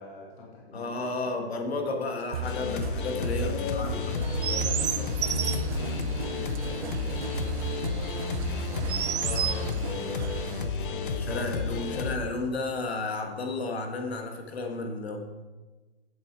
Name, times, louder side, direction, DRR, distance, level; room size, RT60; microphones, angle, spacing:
voice 1, 0.0-1.4 1.7-1.9 3.4-9.1 9.8-11.9, left 3 dB, 10° left, -2 dB, 0.7 m, -42 dB
voice 2, 0.7-3.9 9.2-9.7 11.2-15.3, left 3 dB, 70° left, 4 dB, 1.7 m, -32 dB
sound 1, 2.3-10.5, right 3 dB, 35° right, 0.6 m, -35 dB
sound 2, 2.4-12.2, left 4 dB, 50° left, 0.9 m, -32 dB
Chirp tweet, 4.0-10.6, right 8 dB, 85° right, 0.7 m, -34 dB
7.9 x 7.6 x 4.7 m, 1.3 s
hypercardioid pair, 170°, 32 cm